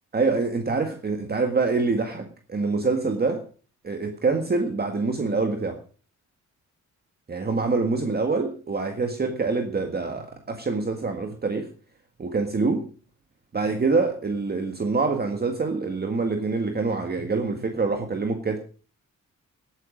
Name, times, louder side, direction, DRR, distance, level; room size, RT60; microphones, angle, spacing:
voice 1, 0.1-3.4 3.8-5.8 7.3-11.7 12.2-12.8 13.5-18.6, right 4 dB, 30° right, 5 dB, 1.7 m, -25 dB
18.0 x 9.5 x 5.1 m, 0.39 s
wide cardioid pair, 135°, 31 cm